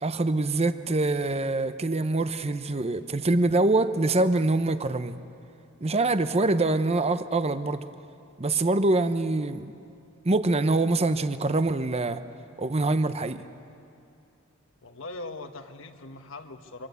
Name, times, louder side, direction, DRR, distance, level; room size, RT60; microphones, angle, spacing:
voice 1, 0.0-5.2 5.8-7.8 8.4-9.7 10.2-12.2 12.6-13.4, right 2 dB, 30° right, 11 dB, 0.8 m, -24 dB
voice 2, 14.8-16.9, left 2 dB, 70° left, 7 dB, 1.4 m, -40 dB
24.5 x 24.5 x 8.3 m, 2.6 s
head